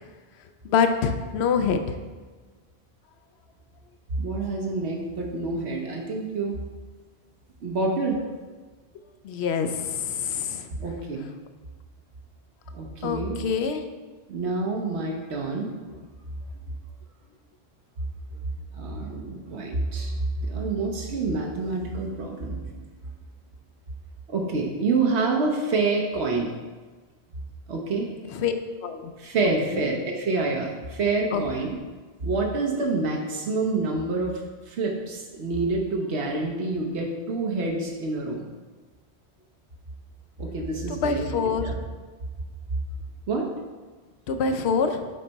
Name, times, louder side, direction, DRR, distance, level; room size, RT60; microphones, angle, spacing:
voice 1, 0.6-2.0 9.2-10.7 13.0-13.8 28.3-28.5 28.8-29.1 29.7-29.8 31.3-31.4 40.9-41.6 44.3-45.1, left 6 dB, 80° left, 7 dB, 0.8 m, -25 dB
voice 2, 4.2-6.6 7.6-8.2 10.7-11.3 12.7-13.4 14.3-15.8 18.7-20.1 20.4-22.6 24.3-26.5 27.7-28.1 29.2-31.8 32.2-34.4 34.7-38.4 40.4-41.7 43.3-43.5, right 3 dB, 85° right, 0 dB, 1.1 m, -27 dB
6.5 x 4.4 x 4.0 m, 1.3 s
omnidirectional pair, 1.1 m